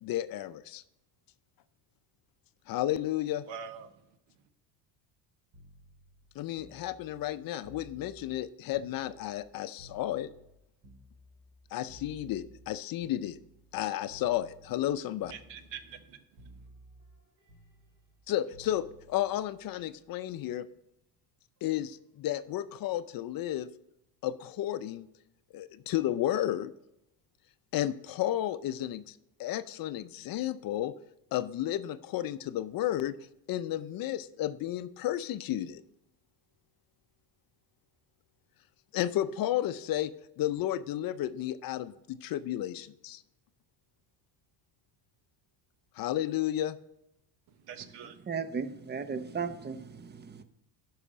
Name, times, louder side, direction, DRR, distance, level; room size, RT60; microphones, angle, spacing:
voice 1, 0.0-0.8 2.7-3.5 6.4-10.3 11.7-13.4 13.7-15.3 18.3-20.7 21.6-23.7 24.2-25.1 25.5-26.7 27.7-30.9 31.3-33.2 33.5-35.8 38.9-43.2 46.0-46.8, left 13 dB, 50° left, 0.6 m, -32 dB
voice 2, 3.4-4.1 15.3-16.0 47.5-48.3, right 7 dB, 65° right, 1.1 m, -44 dB
sound 1, 5.5-9.5 9.8-13.8 14.1-14.9 15.2-16.1 16.4-20.4 21.6-21.8, right 1 dB, 45° right, 3.7 m, -56 dB
voice 3, 48.3-50.4, right 5 dB, 20° right, 0.7 m, -36 dB
11.0 x 5.7 x 5.0 m
supercardioid pair, 95°, 45 cm